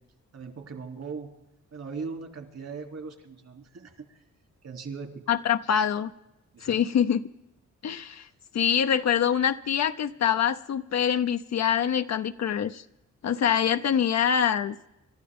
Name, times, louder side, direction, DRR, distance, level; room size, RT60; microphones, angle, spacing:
voice 1, 0.3-1.3 1.7-4.2 4.6-5.1 6.5-6.8, right 5 dB, 60° right, 4 dB, 3.0 m, -39 dB
voice 2, 5.3-6.1 6.6-7.2 7.8-8.3 8.5-12.8 13.2-14.8, left 8 dB, 65° left, 9 dB, 0.6 m, -25 dB
27.5 x 13.0 x 3.6 m, 0.89 s
cardioid pair, 80°, 29 cm